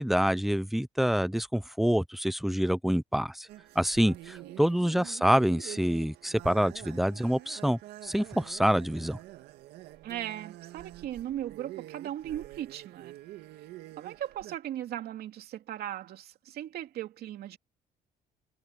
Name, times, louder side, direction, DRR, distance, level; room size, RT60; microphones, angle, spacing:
voice 1, 0.0-3.5 3.8-9.2, equal, ahead, 0.6 m, -27 dB
sound 1, 3.5-14.6, right 15 dB, 85° right, 1.9 m, -47 dB
voice 2, 4.0-4.6 10.0-13.2 14.0-17.6, right 11 dB, 70° right, 2.7 m, -38 dB
cardioid pair, 110°, 17 cm